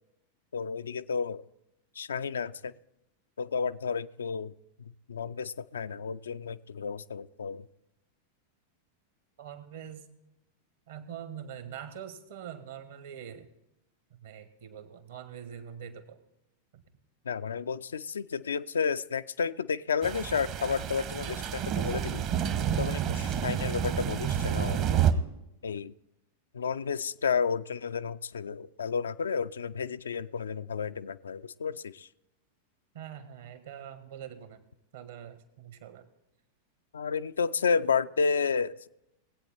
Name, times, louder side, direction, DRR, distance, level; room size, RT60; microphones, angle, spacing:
voice 1, 0.5-1.4 2.0-2.7 3.4-4.5 5.1-7.7 17.3-22.2 22.8-24.8 25.6-25.9 26.5-32.1 36.9-38.9, left 6 dB, 70° left, 13 dB, 0.4 m, -31 dB
voice 2, 9.4-10.0 10.9-13.5 14.1-16.2 16.7-16.8 32.9-34.6 34.9-36.1, right 9 dB, 60° right, 10 dB, 1.4 m, -44 dB
sound 1, 20.0-25.1, right 9 dB, 40° right, 0.9 m, -29 dB
20.0 x 8.5 x 4.4 m, 0.88 s
figure-of-eight pair, 90°, 0 cm